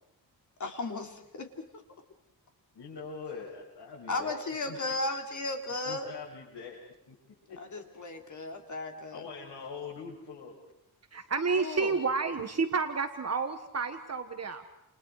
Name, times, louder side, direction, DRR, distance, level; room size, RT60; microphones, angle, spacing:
voice 1, 0.6-1.5 1.7-1.8 4.1-6.1 7.6-9.3 11.6-11.9, left 2 dB, 45° left, 4 dB, 3.5 m, -35 dB
voice 2, 2.7-4.4 4.7-4.8 5.8-6.8 7.1-7.2 7.5-7.8 9.1-10.6, left 5 dB, 85° left, -5 dB, 7.3 m, -43 dB
voice 3, 11.1-14.6, right 4 dB, 40° right, 6 dB, 1.6 m, -30 dB
29.5 x 29.5 x 4.9 m, 0.85 s
wide cardioid pair, 155°, 40 cm